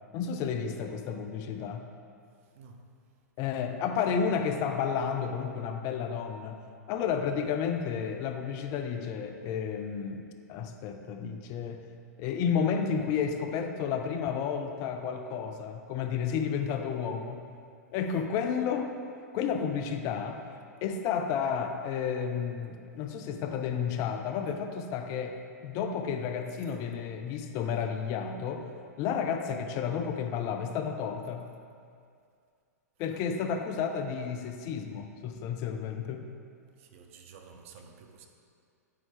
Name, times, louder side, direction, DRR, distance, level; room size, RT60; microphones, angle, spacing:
voice 1, 0.1-1.9 3.4-6.6 6.9-11.9 12.2-17.5 17.9-18.9 19.3-20.4 20.8-28.7 29.0-31.5 33.0-36.2, left 7 dB, 35° left, 0.5 m, -31 dB
voice 2, 2.4-3.0 33.1-33.3 36.8-38.3, right 5 dB, 50° right, 0.7 m, -52 dB
8.4 x 4.3 x 3.3 m
figure-of-eight pair, 105°, 9 cm